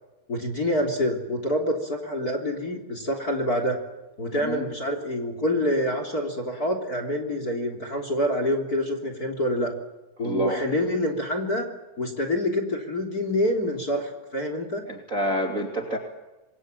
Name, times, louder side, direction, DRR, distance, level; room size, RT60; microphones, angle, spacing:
voice 1, 0.3-3.8 4.2-9.7 10.2-11.6 12.0-14.8, left 1 dB, 25° left, 5 dB, 3.1 m, -26 dB
voice 2, 10.2-10.6 14.9-16.0, equal, 25° right, 3 dB, 2.2 m, -28 dB
27.5 x 22.5 x 9.1 m, 1.1 s
omnidirectional pair, 5.0 m